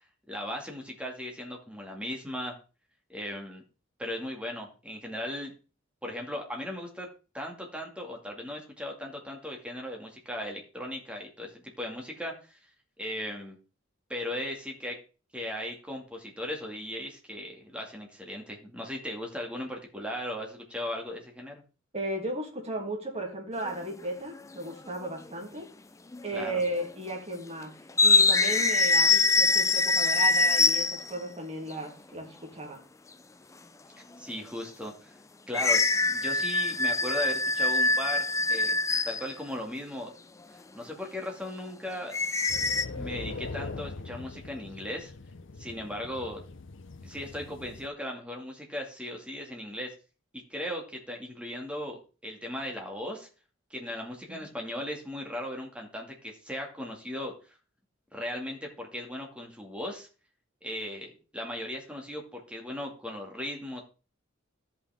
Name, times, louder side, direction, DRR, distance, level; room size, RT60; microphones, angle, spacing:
voice 1, 0.3-2.6 3.1-3.6 4.0-5.5 6.0-7.1 7.3-12.6 13.0-13.6 14.1-15.0 15.3-21.6 26.3-26.6 34.2-35.2 35.5-38.7 39.1-40.1 40.7-42.2 42.9-45.1 45.6-46.4 47.0-49.9 50.3-53.3 53.7-57.3 58.1-60.1 60.6-63.8, left 1 dB, 5° right, 2.2 m, -37 dB
voice 2, 21.9-25.7 26.2-27.7 28.0-32.8 54.3-54.5, right 1 dB, 35° right, 2.6 m, -35 dB
sound 1, 23.6-23.8 25.0-25.1 26.1-26.5 26.8-26.9 27.9-31.2 35.5-39.3 42.1-42.9, left 3 dB, 15° left, 0.4 m, -24 dB
sound 2, 42.5-47.9, left 3 dB, 65° left, 0.7 m, -41 dB
13.5 x 5.7 x 3.6 m
head